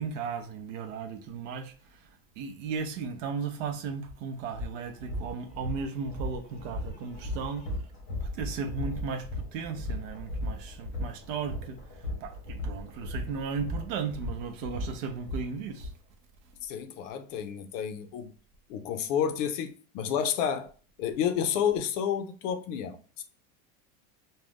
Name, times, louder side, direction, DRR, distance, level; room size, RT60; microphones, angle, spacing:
voice 1, 0.0-7.7 8.2-15.9, right 5 dB, 55° right, 0.6 m, -36 dB
sound 1, 4.0-4.1 4.5-15.9, left 1 dB, 25° left, 0.8 m, -36 dB
voice 2, 16.6-18.3 18.7-20.7 21.0-23.2, left 8 dB, 55° left, 0.5 m, -30 dB
2.5 x 2.2 x 3.3 m
supercardioid pair, 165°, 45 cm